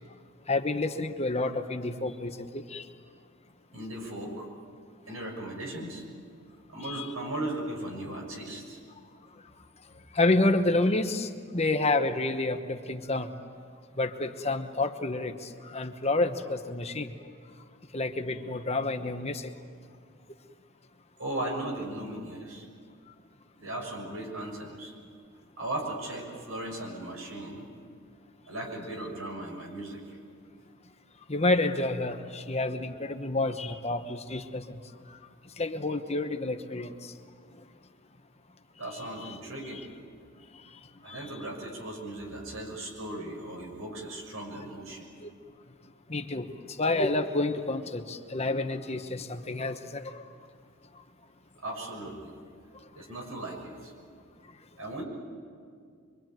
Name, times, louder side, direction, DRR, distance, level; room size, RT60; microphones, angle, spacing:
voice 1, 0.5-2.8 6.8-7.1 10.1-13.3 14.0-17.1 17.9-19.5 31.3-34.8 35.6-36.9 39.2-39.3 41.1-41.2 45.2-45.3 46.1-46.5 46.8-50.2, left 2 dB, 30° left, 7 dB, 1.1 m, -29 dB
voice 2, 3.7-4.5 5.1-6.0 6.7-8.8 21.2-22.7 23.6-24.9 25.6-27.7 28.5-30.2 38.8-39.8 41.0-45.1 51.6-52.4 52.9-53.9 54.8-55.0, right 1 dB, 80° right, 1 dB, 6.4 m, -37 dB
25.0 x 24.5 x 9.2 m, 2.2 s
head